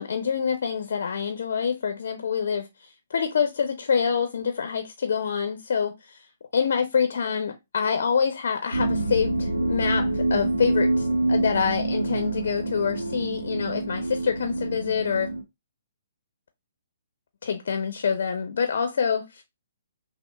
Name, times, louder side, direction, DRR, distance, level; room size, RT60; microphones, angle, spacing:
voice 1, 0.0-6.2 6.5-15.3 17.4-19.4, left 6 dB, 60° left, 0.6 m, -26 dB
sound 1, 8.7-15.4, right 2 dB, 85° right, 0.8 m, -26 dB
5.9 x 2.1 x 2.3 m
figure-of-eight pair, 130°, 0 cm